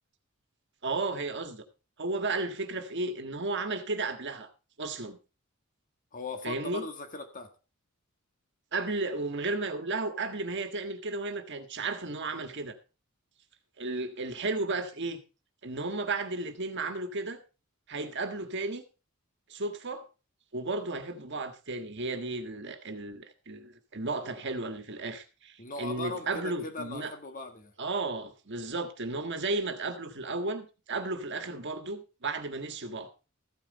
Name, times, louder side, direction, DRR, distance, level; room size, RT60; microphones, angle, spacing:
voice 1, 0.8-1.6 2.0-4.5 4.8-5.2 6.4-6.9 8.7-12.8 13.8-15.2 15.6-17.4 17.9-18.8 19.5-20.0 20.5-27.1 27.8-33.1, right 3 dB, 55° right, 1.6 m, -34 dB
voice 2, 6.1-7.5 17.9-18.1 25.6-27.7, left 3 dB, 40° left, 1.7 m, -39 dB
14.0 x 9.0 x 4.1 m
head